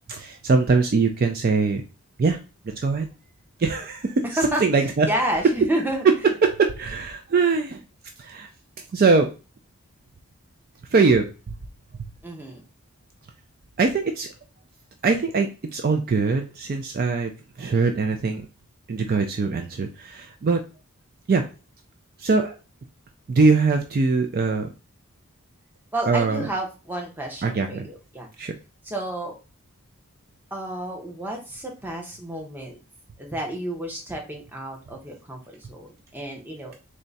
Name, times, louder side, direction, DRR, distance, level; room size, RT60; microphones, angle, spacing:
voice 1, 0.1-1.8 2.2-2.4 2.7-3.1 3.6-4.2 4.6-5.1 6.0-6.1 6.4-7.8 8.2-8.5 8.9-9.3 10.9-11.6 13.8-14.3 15.0-17.3 17.6-18.5 18.9-20.6 21.3-21.4 22.2-22.6 23.3-24.7 26.1-26.5 27.4-27.9 28.4-28.5, right 4 dB, 40° right, 5 dB, 0.3 m, -22 dB
voice 2, 4.4-6.0 12.2-12.6 25.9-28.3 28.8-29.3 30.5-32.8 33.2-36.8, right 1 dB, 10° right, 1 dB, 0.7 m, -30 dB
3.6 x 2.2 x 3.9 m, 0.32 s
head